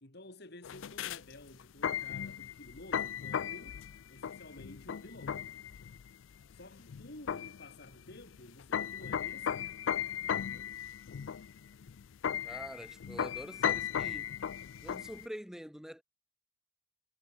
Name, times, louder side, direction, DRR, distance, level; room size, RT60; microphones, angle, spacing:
voice 1, 0.0-3.8 4.1-5.5 6.5-9.7 10.4-10.8, left 1 dB, 55° left, 3.5 m, -52 dB
sound 1, 0.6-15.3, left 8 dB, 80° left, 0.4 m, -37 dB
voice 2, 12.4-14.3 14.8-16.0, equal, ahead, 1.1 m, -45 dB
head